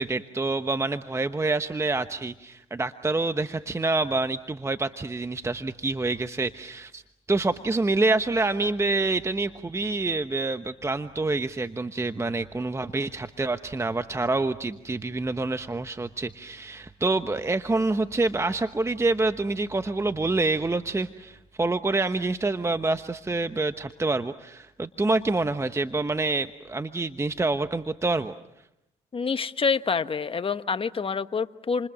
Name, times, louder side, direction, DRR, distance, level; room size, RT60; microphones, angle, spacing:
voice 1, 0.0-7.0 7.3-28.3, right 3 dB, 15° right, 10 dB, 1.1 m, -27 dB
voice 2, 29.1-31.9, left 5 dB, 35° left, 11 dB, 1.3 m, -27 dB
29.5 x 28.0 x 6.3 m, 0.84 s
supercardioid pair, 70°, 17 cm